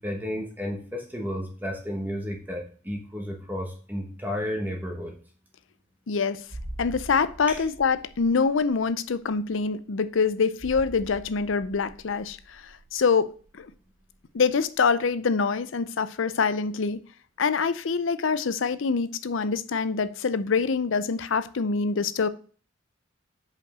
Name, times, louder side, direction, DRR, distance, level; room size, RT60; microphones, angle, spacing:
voice 1, 0.0-5.1 7.5-7.7, equal, 10° right, 1.1 m, -32 dB
voice 2, 6.1-6.4 6.8-13.3 13.6-13.7 14.3-17.0 17.4-22.3, left 5 dB, 75° left, 0.5 m, -25 dB
sound 1, 6.5-14.9 15.2-15.3, right 1 dB, 40° right, 0.7 m, -45 dB
5.3 x 5.2 x 6.1 m
head